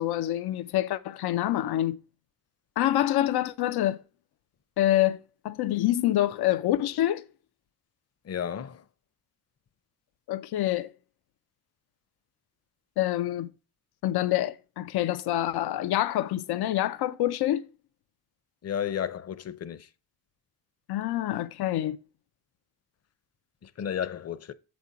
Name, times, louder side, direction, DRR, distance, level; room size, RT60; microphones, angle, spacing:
voice 1, 0.0-2.0 2.8-4.0 4.8-7.2 10.3-10.9 13.0-13.5 14.0-17.7 20.9-22.0, left 13 dB, 85° left, 0.5 m, -26 dB
voice 2, 8.2-8.8 18.6-19.9 23.6-24.5, left 9 dB, 40° left, 0.6 m, -33 dB
7.5 x 4.3 x 4.7 m
cardioid pair, 115°, 37 cm